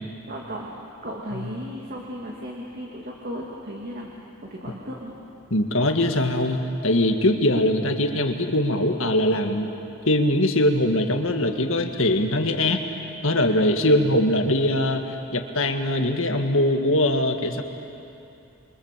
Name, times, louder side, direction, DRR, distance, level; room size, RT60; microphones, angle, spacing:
voice 1, 0.3-0.7 1.0-4.1 4.4-5.1 13.8-14.1, equal, 40° right, -2 dB, 2.3 m, -35 dB
voice 2, 5.5-9.7 10.1-12.8 13.2-17.6, left 1 dB, 60° left, 5 dB, 1.9 m, -22 dB
28.0 x 24.0 x 7.5 m, 2.8 s
head